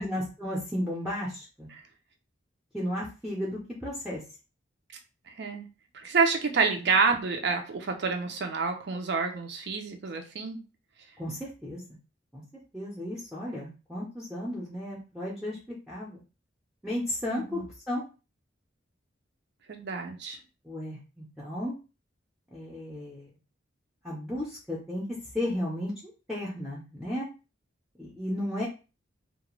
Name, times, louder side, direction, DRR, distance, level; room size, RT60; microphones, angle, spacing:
voice 1, 0.0-1.7 2.7-4.2 11.2-11.8 12.3-12.4 12.7-15.6 15.9-16.2 16.8-18.0 20.6-21.7 22.5-23.3 24.0-25.1 25.3-27.3 28.0-28.7, left 1 dB, 5° right, -5 dB, 0.6 m, -34 dB
voice 2, 5.3-5.7 5.9-10.6 17.5-17.7 19.7-20.4, right 4 dB, 60° right, 4 dB, 0.5 m, -28 dB
2.4 x 2.1 x 3.0 m, 0.32 s
head